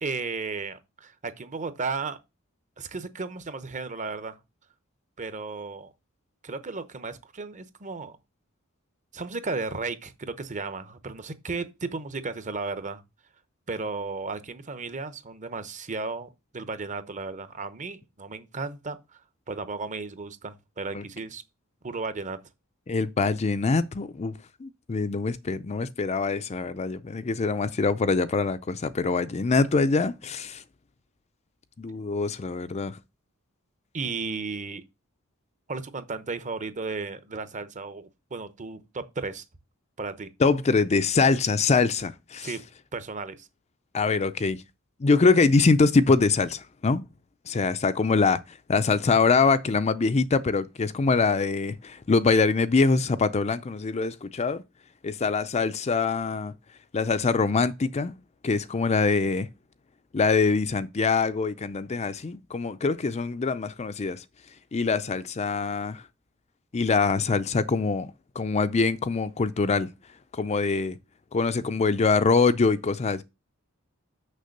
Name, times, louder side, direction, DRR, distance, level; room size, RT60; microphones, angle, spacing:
voice 1, 0.0-2.2 2.8-4.4 5.2-5.9 6.4-8.2 9.1-13.0 13.7-19.2 19.5-21.4 21.8-22.4 33.9-34.8 35.7-39.4 40.0-40.3 42.4-42.6 42.9-43.5, right 4 dB, 35° right, 0.9 m, -34 dB
voice 2, 22.9-24.3 24.6-30.6 31.8-33.0 40.4-42.5 43.9-44.6 45.0-47.0 47.5-54.6 55.0-56.5 56.9-58.2 58.4-59.5 60.1-64.2 64.7-66.0 66.7-68.1 68.4-69.9 70.3-71.0 71.3-73.2, left 4 dB, 30° left, 0.5 m, -24 dB
6.6 x 6.0 x 6.5 m
head